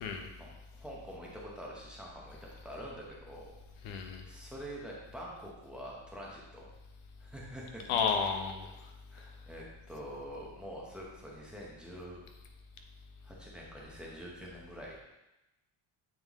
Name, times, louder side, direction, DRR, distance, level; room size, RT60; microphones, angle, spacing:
voice 1, 0.4-3.5 4.2-6.7 7.2-7.9 9.1-12.2 13.2-15.0, equal, ahead, -4 dB, 0.8 m, -46 dB
voice 2, 3.8-4.2 7.9-8.9, left 6 dB, 85° left, 5 dB, 0.9 m, -32 dB
7.9 x 3.7 x 3.5 m, 0.97 s
cardioid pair, 180°, 48 cm